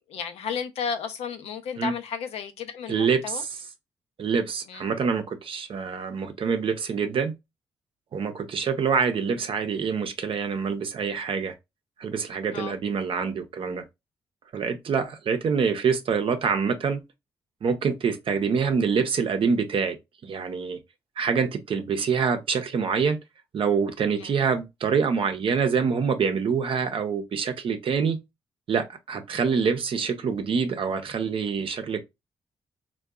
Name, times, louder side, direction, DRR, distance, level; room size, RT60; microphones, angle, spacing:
voice 1, 0.1-3.4 4.7-4.8 12.5-12.8 24.2-24.3, left 6 dB, 80° left, 0.5 m, -33 dB
voice 2, 2.9-3.5 4.2-7.3 8.1-11.5 12.0-13.8 14.5-17.0 17.6-20.0 20.2-20.8 21.2-23.2 23.5-28.2 28.7-32.0, right 6 dB, 60° right, 0.6 m, -26 dB
3.6 x 2.2 x 2.2 m
supercardioid pair, 50°, 10 cm